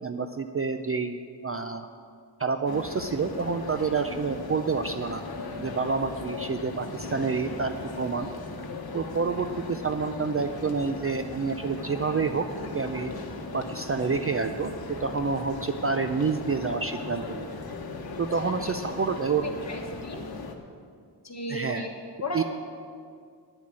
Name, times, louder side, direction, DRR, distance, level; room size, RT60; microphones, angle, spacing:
voice 1, 0.0-1.9 2.4-5.2 5.6-8.3 8.9-12.5 12.7-13.1 13.5-17.5 18.2-19.5 21.5-21.9 22.3-22.4, right 5 dB, 35° right, 7 dB, 0.4 m, -28 dB
sound 1, 2.7-20.6, left 3 dB, 55° left, 1.2 m, -38 dB
voice 2, 18.4-18.9 19.3-20.2 21.2-21.9 22.2-22.4, left 1 dB, 40° left, 1 dB, 1.4 m, -35 dB
10.0 x 7.3 x 8.8 m, 2.1 s
wide cardioid pair, 160°, 43 cm